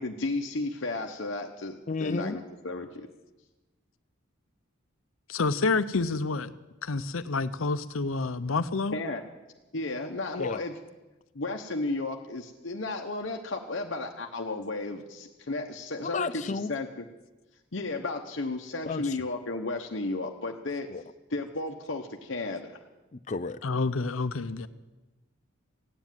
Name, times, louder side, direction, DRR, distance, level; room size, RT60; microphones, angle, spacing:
voice 1, 0.0-3.1 8.9-9.2 9.7-10.8 11.3-16.9 17.7-20.9 21.3-22.8, left 2 dB, 65° left, 3 dB, 1.0 m, -33 dB
voice 2, 1.9-2.4 10.4-10.6 16.0-16.7 18.8-19.2 20.9-21.0 23.1-23.6, left 4 dB, 35° left, 11 dB, 0.5 m, -32 dB
voice 3, 5.3-6.5 6.8-9.0 23.6-24.7, left 3 dB, 90° left, 14 dB, 0.7 m, -28 dB
16.0 x 9.7 x 9.1 m, 1.1 s
head